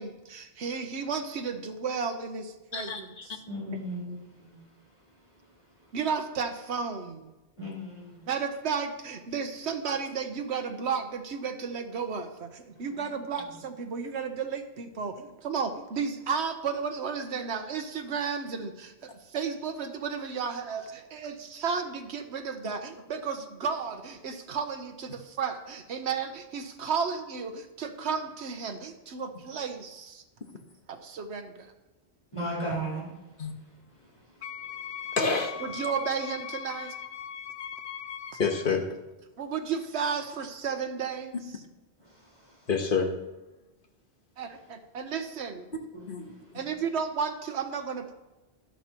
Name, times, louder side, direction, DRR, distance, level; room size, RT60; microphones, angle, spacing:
voice 1, 0.0-3.4 5.9-7.3 8.3-30.2 30.9-31.7 35.6-36.9 39.4-41.6 44.4-45.7 46.5-48.1, right 6 dB, 85° right, 6 dB, 1.2 m, -33 dB
voice 2, 2.7-3.3 33.4-33.5 35.2-35.6 38.4-38.8 42.7-43.1 46.1-46.3, left 5 dB, 55° left, 4 dB, 1.3 m, -27 dB
voice 3, 3.5-4.7 7.6-8.3 12.7-13.4 32.3-33.1 34.0-34.1 34.6-34.7 42.0-42.7 45.9-46.7, right 1 dB, 25° left, -7 dB, 4.4 m, -37 dB
Wind instrument woodwind instrument, 34.4-38.7, left 8 dB, 75° left, 1.0 m, -39 dB
12.5 x 11.5 x 3.0 m, 1.0 s
omnidirectional pair, 1.1 m